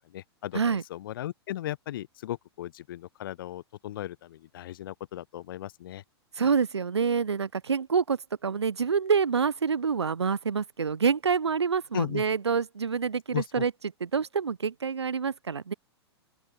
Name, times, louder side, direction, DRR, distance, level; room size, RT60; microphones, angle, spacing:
voice 1, 0.1-6.0 11.9-12.2 13.3-13.7, left 13 dB, 55° left, 1.0 m, -36 dB
voice 2, 6.4-13.7 14.0-15.7, right 6 dB, 75° right, 0.8 m, -27 dB
open air
figure-of-eight pair, 100°, 14 cm